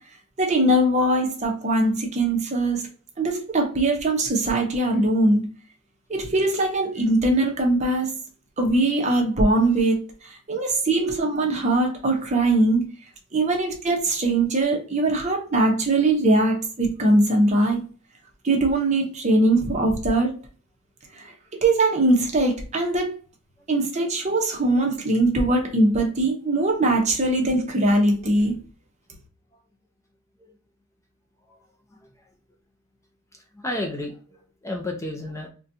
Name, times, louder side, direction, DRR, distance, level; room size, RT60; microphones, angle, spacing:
voice 1, 0.4-2.9 3.2-5.5 6.1-8.2 8.6-12.9 13.3-17.9 18.4-20.4 21.1-23.2 23.7-28.6, right 2 dB, 35° right, 0.7 m, -21 dB
voice 2, 33.5-35.5, left 1 dB, 15° left, 0.5 m, -32 dB
3.9 x 2.2 x 2.6 m
head